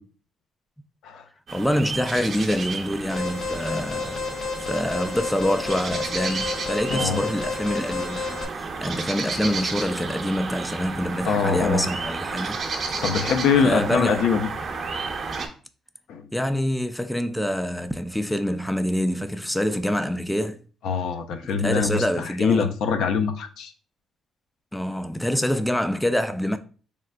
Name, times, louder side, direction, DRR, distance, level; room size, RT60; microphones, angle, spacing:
voice 1, 1.5-4.3 4.6-12.6 13.6-14.2 16.3-20.6 21.4-22.7 24.7-26.6, equal, 5° left, 0.3 m, -26 dB
sound 1, 1.5-15.5, right 4 dB, 50° right, 0.8 m, -32 dB
Alarm, 3.1-8.4, left 4 dB, 45° left, 1.0 m, -31 dB
voice 2, 6.9-7.2 8.9-9.0 11.3-11.8 13.0-14.5 16.1-16.3 20.8-23.7, left 6 dB, 80° left, 0.5 m, -23 dB
4.1 x 3.7 x 2.2 m
cardioid pair, 90°, 0 cm